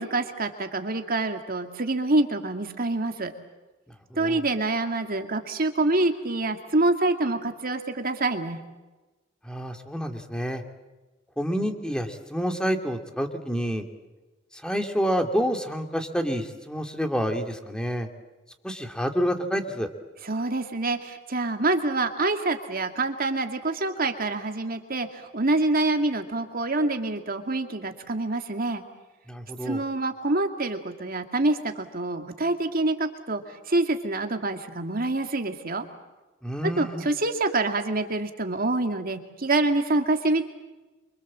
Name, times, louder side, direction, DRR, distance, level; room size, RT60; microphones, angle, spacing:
voice 1, 0.0-3.3 4.2-8.6 20.2-28.8 29.6-33.4 33.7-35.8 36.6-40.5, right 2 dB, 50° right, 5 dB, 2.3 m, -26 dB
voice 2, 4.1-4.4 9.4-10.6 11.4-13.8 14.5-18.1 18.6-19.9 29.3-29.8 36.4-37.0, equal, 5° left, 5 dB, 2.7 m, -28 dB
28.0 x 24.5 x 7.5 m, 1.1 s
head